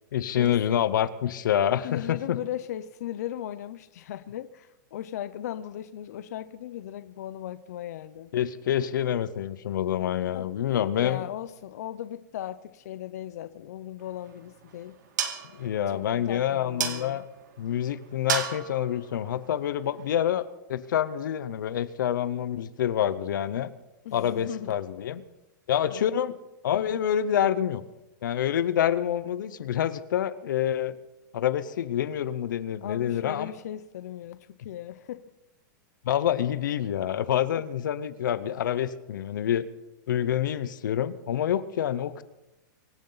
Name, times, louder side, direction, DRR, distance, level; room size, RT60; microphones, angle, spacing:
voice 1, 0.1-2.4 8.3-11.2 15.6-17.2 17.6-23.7 24.1-25.2 25.7-26.3 26.6-27.8 28.2-31.0 31.3-33.5 36.0-39.6 40.1-42.2, left 10 dB, 75° left, 15 dB, 0.9 m, -27 dB
voice 2, 1.8-8.3 10.3-14.9 15.9-17.2 24.0-24.8 25.9-26.3 32.8-35.2, left 11 dB, 55° left, 13 dB, 0.6 m, -37 dB
sound 1, 14.0-20.4, right 8 dB, 65° right, 2.0 m, -36 dB
24.5 x 11.0 x 4.0 m, 0.98 s
supercardioid pair, 180°, 10 cm